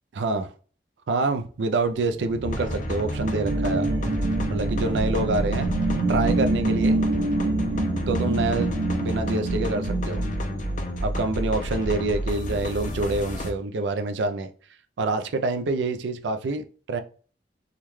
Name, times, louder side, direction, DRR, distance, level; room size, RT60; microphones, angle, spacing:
voice 1, 0.2-0.5 1.1-3.9 4.5-5.7 6.1-7.0 8.1-8.7 9.0-10.2 11.0-14.5 15.0-17.0, right 3 dB, 90° right, 8 dB, 0.4 m, -26 dB
sound 1, 2.0-11.3, right 2 dB, 70° right, 0.8 m, -27 dB
sound 2, 2.4-13.5, equal, 45° left, 0.5 m, -30 dB
3.5 x 2.2 x 3.0 m, 0.41 s
head